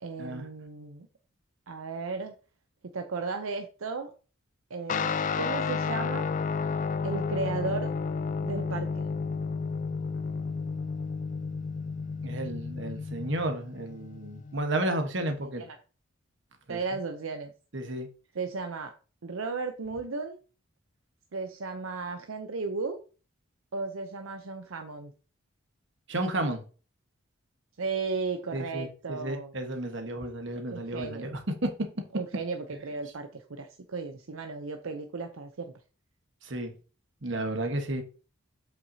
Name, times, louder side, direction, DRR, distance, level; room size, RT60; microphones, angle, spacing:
voice 1, 0.0-1.1 1.7-2.3 2.9-4.1 4.7-6.3 7.0-7.9 8.4-9.1 15.4-15.8 16.7-17.5 18.3-18.9 19.2-20.4 21.3-23.0 23.7-25.1 27.8-29.5 30.7-31.3 32.1-35.7, right 4 dB, 75° right, 5 dB, 0.6 m, -35 dB
Guitar, 4.9-14.6, left 5 dB, 35° left, 0.3 m, -32 dB
voice 2, 12.2-15.6 16.7-16.8 17.7-18.1 26.1-26.6 28.5-31.4 36.4-36.7 37.2-38.0, right 1 dB, 55° right, 5 dB, 1.2 m, -32 dB
7.8 x 5.9 x 2.7 m, 0.37 s
head